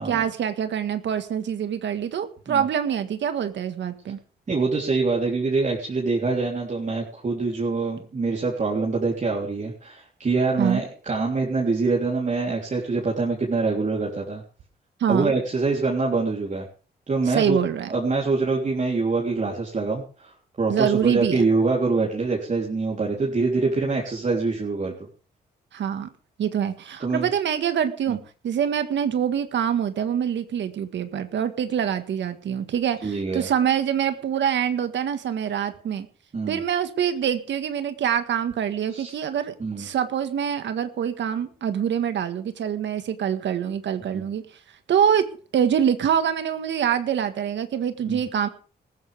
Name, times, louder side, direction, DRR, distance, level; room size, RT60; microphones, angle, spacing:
voice 1, 0.0-4.2 10.6-10.8 15.0-15.4 17.3-17.9 20.7-21.4 25.7-26.1 26.4-28.2 28.4-36.1 36.5-44.4 44.9-45.3 45.5-48.5, right 8 dB, 80° right, 9 dB, 1.7 m, -25 dB
voice 2, 4.5-14.4 15.1-16.7 17.1-17.6 17.9-25.0 27.0-27.3 28.1-28.2 33.0-33.5 36.3-36.6 38.9-39.2 39.6-39.9 44.1-44.3 48.1-48.2, right 3 dB, 40° right, -2 dB, 3.6 m, -25 dB
20.0 x 14.5 x 3.6 m, 0.38 s
cardioid pair, 85°, 18 cm